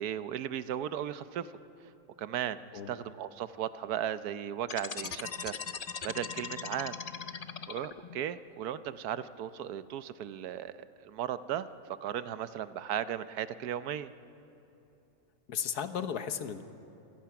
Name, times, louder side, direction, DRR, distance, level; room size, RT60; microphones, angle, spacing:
voice 1, 0.0-1.5 2.2-2.6 2.9-7.0 7.7-10.7 11.0-11.7 12.0-14.1, right 10 dB, 85° right, 13 dB, 1.2 m, -36 dB
sound 1, 4.6-8.2, left 6 dB, 50° left, 0.4 m, -39 dB
voice 2, 15.5-16.6, left 8 dB, 90° left, 9 dB, 1.6 m, -35 dB
27.0 x 17.0 x 5.9 m, 3.0 s
omnidirectional pair, 1.6 m